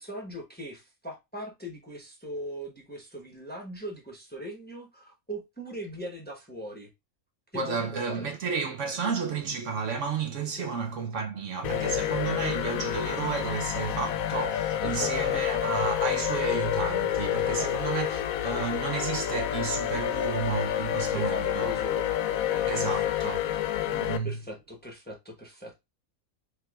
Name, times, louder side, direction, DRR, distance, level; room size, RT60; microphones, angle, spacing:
voice 1, 0.0-6.9 7.5-8.3 10.5-10.7 14.8-15.5 17.4-17.8 21.1-23.1 23.8-23.9 24.2-25.8, right 1 dB, 10° left, 0.8 m, -40 dB
voice 2, 7.5-21.7 22.7-23.4 23.9-24.4, right 5 dB, 65° right, 0.9 m, -32 dB
sound 1, 11.6-24.2, left 11 dB, 75° left, 1.0 m, -29 dB
4.8 x 3.3 x 2.3 m
omnidirectional pair, 1.5 m